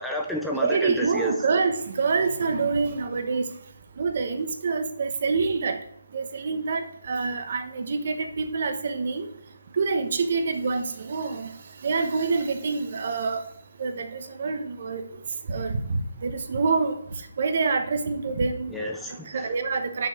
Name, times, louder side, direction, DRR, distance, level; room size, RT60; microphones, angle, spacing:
voice 1, 0.0-1.3 18.7-19.5, left 1 dB, ahead, -1 dB, 0.6 m, -30 dB
voice 2, 0.5-3.4 4.0-5.8 6.1-9.3 9.7-11.5 11.8-13.4 13.8-15.0 15.5-16.9 17.4-18.7 19.3-20.1, right 4 dB, 50° right, 8 dB, 1.1 m, -26 dB
6.5 x 6.1 x 4.4 m, 0.72 s
hypercardioid pair, 160°, 0 cm